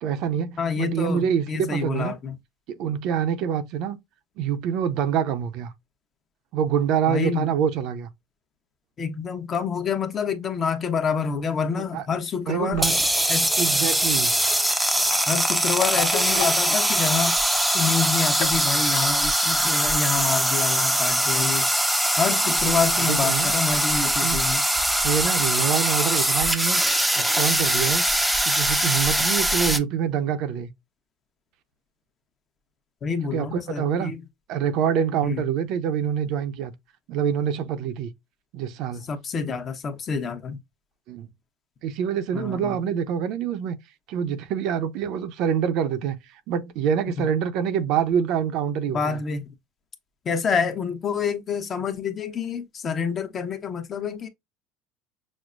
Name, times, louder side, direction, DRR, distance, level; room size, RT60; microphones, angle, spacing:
voice 1, 0.0-2.1 2.7-4.0 4.4-5.7 6.5-8.1 11.8-12.0 12.5-12.9 13.6-14.4 22.4-23.5 24.2-24.4 25.0-26.8 27.1-28.0 28.4-30.7 33.3-34.1 34.5-36.7 37.1-38.1 38.5-39.1 41.1-41.3 41.8-43.8 44.1-49.2, right 8 dB, 65° right, 0.6 m, -26 dB
voice 2, 0.6-2.3 7.1-7.6 9.0-12.8 13.3-13.5 15.3-17.4 17.7-21.7 22.2-24.6 33.0-34.2 35.2-35.4 39.0-40.6 42.3-42.8 47.2-47.3 48.9-49.5 50.2-54.3, left 6 dB, 35° left, 0.9 m, -27 dB
sound 1, 12.7-13.1 14.9-17.4 17.7-17.8 18.0-18.1 18.3-19.3, left 9 dB, 80° left, 0.8 m, -33 dB
sound 2, 12.7-29.8, right 1 dB, 5° right, 0.6 m, -22 dB
6.2 x 2.1 x 2.5 m
supercardioid pair, 105°, 0 cm